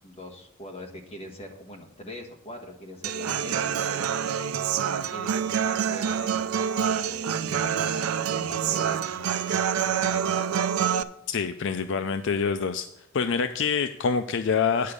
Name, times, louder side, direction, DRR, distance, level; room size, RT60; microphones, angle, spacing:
voice 1, 0.0-4.3 5.1-6.6 6.9-10.5, left 1 dB, 30° left, 2 dB, 1.4 m, -43 dB
Human voice / Acoustic guitar, 3.0-11.0, right 8 dB, 85° right, 0.5 m, -26 dB
voice 2, 11.3-12.9 13.1-14.9, left 6 dB, 60° left, 9 dB, 0.4 m, -26 dB
9.6 x 6.6 x 5.1 m, 0.78 s
head